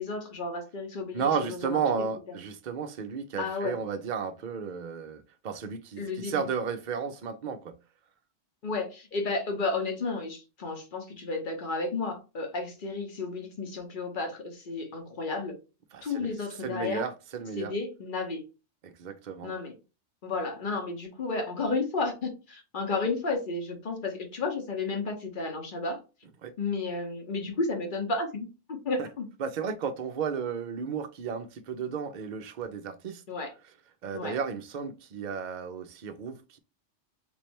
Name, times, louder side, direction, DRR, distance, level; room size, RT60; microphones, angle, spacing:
voice 1, 0.0-2.1 3.4-3.8 6.0-6.5 8.6-15.6 16.0-17.0 17.6-18.5 19.4-19.7 20.2-26.0 26.6-29.3 33.3-33.5 34.1-34.4, left 3 dB, 45° left, 1.1 m, -32 dB
voice 2, 1.1-7.8 15.9-16.3 16.6-17.7 18.8-19.5 26.4-26.5 29.0-29.1 29.4-33.2 34.0-36.6, right 6 dB, 50° right, 0.6 m, -33 dB
3.5 x 3.2 x 3.0 m
omnidirectional pair, 1.2 m